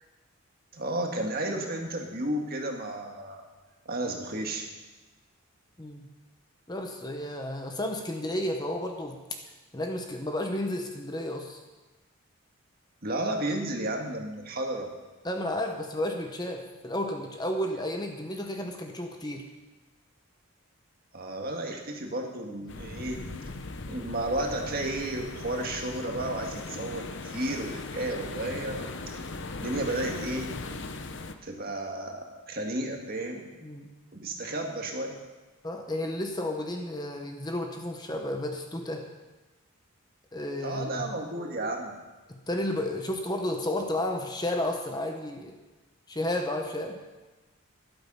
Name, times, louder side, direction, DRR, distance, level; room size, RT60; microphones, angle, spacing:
voice 1, 0.7-3.4 3.9-4.7 13.0-14.9 21.1-23.2 23.9-29.2 29.6-30.5 31.4-33.5 34.1-35.2 40.6-42.0, right 1 dB, 45° right, 2 dB, 1.8 m, -32 dB
voice 2, 5.8-6.1 6.7-9.2 9.7-11.6 15.2-19.5 33.6-34.0 35.6-39.1 40.3-40.9 42.3-45.6 46.1-47.0, left 1 dB, 20° left, 3 dB, 0.9 m, -32 dB
sound 1, 22.7-31.3, left 3 dB, 55° left, 0.8 m, -38 dB
12.5 x 11.5 x 5.5 m, 1.2 s
head